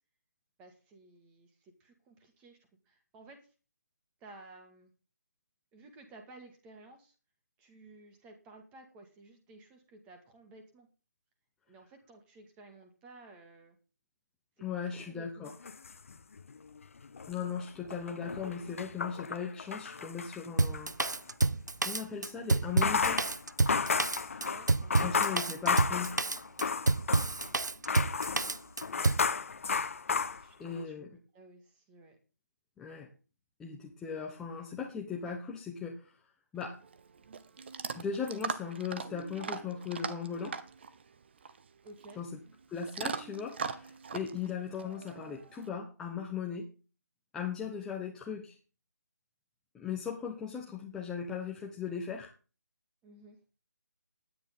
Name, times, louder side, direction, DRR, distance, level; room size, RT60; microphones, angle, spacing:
voice 1, 0.6-2.6 2.9-3.5 4.2-4.9 5.7-7.1 7.6-10.9 11.7-13.8 14.6-15.5 24.4-25.4 28.9-29.7 30.0-32.2 41.8-42.2 53.0-53.4, right 2 dB, 10° right, 5 dB, 2.1 m, -55 dB
voice 2, 14.6-15.5 17.3-20.9 21.8-23.3 25.0-26.1 30.6-31.1 32.8-33.1 33.6-36.2 36.5-36.8 37.9-40.6 42.2-42.3 42.7-46.7 47.3-48.6 49.7-52.3, left 6 dB, 5° left, 0 dB, 1.2 m, -38 dB
sound 1, 15.5-16.7 17.0-21.2 22.6-27.5 27.9-30.8, left 5 dB, 45° left, 1.2 m, -33 dB
Drum kit, 20.6-29.3, right 3 dB, 75° right, 0.8 m, -29 dB
Chewing mastication / Dog, 36.6-45.7, right 6 dB, 35° right, 1.1 m, -41 dB
17.0 x 10.5 x 3.8 m, 0.35 s
figure-of-eight pair, 155°, 10 cm